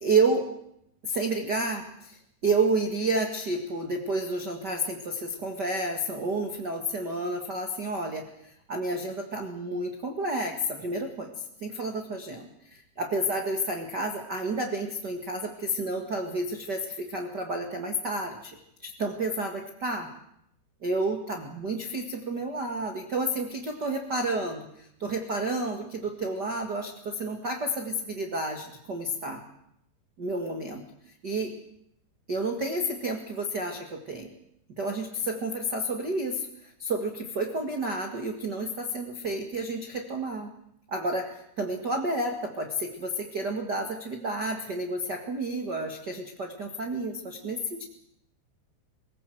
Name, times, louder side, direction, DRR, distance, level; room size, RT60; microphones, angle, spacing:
voice 1, 0.0-0.4 1.1-2.2 2.4-18.6 18.8-20.1 20.8-29.4 30.2-30.8 31.2-31.5 32.3-34.3 34.8-40.5 40.9-47.8, right 2 dB, 85° right, 3 dB, 0.9 m, -30 dB
24.5 x 17.0 x 7.8 m, 0.76 s
omnidirectional pair, 5.3 m